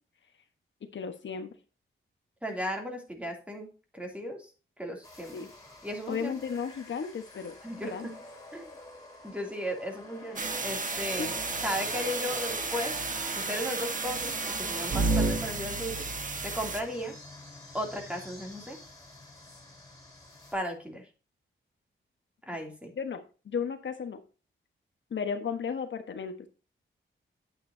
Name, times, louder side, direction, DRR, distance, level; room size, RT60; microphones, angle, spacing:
voice 1, 0.9-1.5 5.3-5.5 6.1-7.6 7.8-8.1 11.2-11.3 23.0-24.2 25.1-26.3, left 6 dB, 65° left, 7 dB, 1.3 m, -34 dB
voice 2, 2.4-4.5 4.8-5.5 5.8-6.4 7.6-8.1 8.5-8.7 9.2-11.4 11.6-12.9 13.3-17.1 17.7-18.8 20.5-21.1 22.4-22.9, equal, 5° right, 2 dB, 2.9 m, -36 dB
sound 1, 5.0-20.5, left 2 dB, 15° left, 4.4 m, -47 dB
sound 2, 10.4-16.8, right 3 dB, 40° right, 1.4 m, -31 dB
9.4 x 9.0 x 2.8 m, 0.35 s
wide cardioid pair, 110°, 21 cm